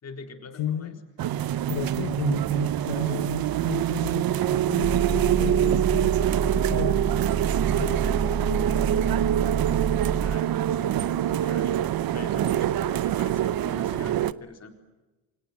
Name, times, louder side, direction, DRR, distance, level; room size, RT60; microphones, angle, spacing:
voice 1, 0.0-1.0 10.2-14.7, left 4 dB, 35° left, 5 dB, 4.1 m, -44 dB
voice 2, 0.5-1.0 1.7-7.1 7.8-9.1 9.4-9.6 11.2-11.3, left 11 dB, 65° left, 8 dB, 1.5 m, -35 dB
sound 1, 1.2-14.3, right 12 dB, 50° right, 0.9 m, -25 dB
sound 2, 4.8-10.4, right 5 dB, 20° right, 0.9 m, -29 dB
28.0 x 25.0 x 7.4 m, 1.1 s
cardioid pair, 135°, 46 cm